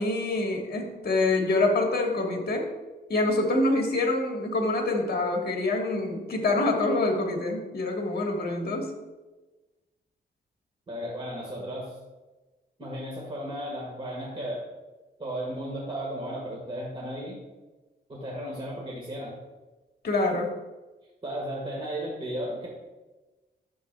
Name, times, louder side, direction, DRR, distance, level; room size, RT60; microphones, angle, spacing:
voice 1, 0.0-2.6 3.1-8.9 20.0-20.5, left 2 dB, 60° left, 1 dB, 1.4 m, -26 dB
voice 2, 10.9-11.9 12.8-14.6 15.2-17.4 18.1-19.4 21.2-22.7, equal, 30° right, -3 dB, 1.7 m, -34 dB
10.5 x 7.2 x 2.3 m, 1.1 s
wide cardioid pair, 125°, 19 cm